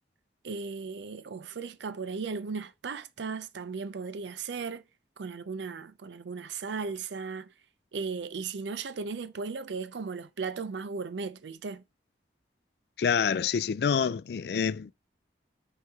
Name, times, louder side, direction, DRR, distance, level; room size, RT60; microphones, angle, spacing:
voice 1, 0.4-4.8 5.2-7.5 7.9-11.8, right 4 dB, 80° right, 0.5 m, -36 dB
voice 2, 13.0-14.9, left 7 dB, 60° left, 0.3 m, -27 dB
9.0 x 3.2 x 3.5 m
head